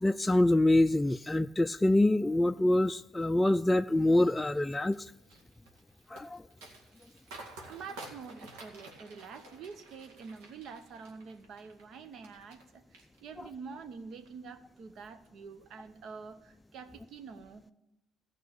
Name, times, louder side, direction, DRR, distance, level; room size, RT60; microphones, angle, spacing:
voice 1, 0.0-5.1 6.1-6.4, left 1 dB, 15° left, 9 dB, 0.3 m, -25 dB
sound 1, 4.4-12.6 12.9-13.6 14.0-14.3, right 2 dB, 85° right, 2.0 m, -51 dB
voice 2, 7.7-17.7, right 5 dB, 65° right, 10 dB, 1.0 m, -47 dB
14.0 x 5.5 x 8.4 m, 0.87 s
supercardioid pair, 65°, 0 cm